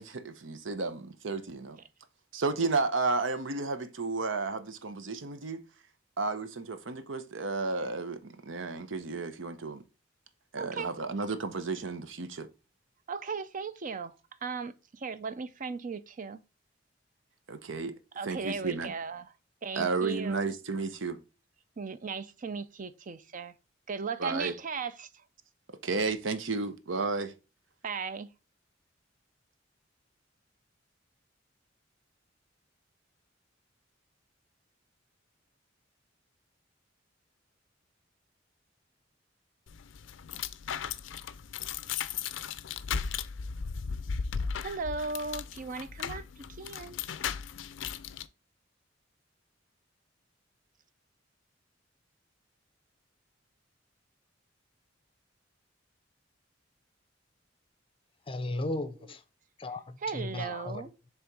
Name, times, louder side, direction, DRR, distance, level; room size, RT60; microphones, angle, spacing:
voice 1, 0.0-1.8 2.3-5.6 6.2-9.8 10.5-12.5 17.5-17.9 18.2-18.9 19.8-21.2 24.2-24.5 25.8-27.3, right 3 dB, 85° right, 0.8 m, -32 dB
voice 2, 10.6-11.0 13.1-14.2 14.4-16.4 18.2-19.3 19.6-20.4 21.8-23.5 23.9-25.2 27.8-28.3 44.6-47.0 59.0-59.1 60.0-60.9, right 4 dB, 45° right, 0.5 m, -37 dB
sound 1, 39.7-48.3, left 6 dB, 85° left, 0.4 m, -36 dB
voice 3, 58.3-59.2 59.6-60.8, left 2 dB, 30° left, 0.6 m, -35 dB
6.6 x 3.5 x 4.7 m
head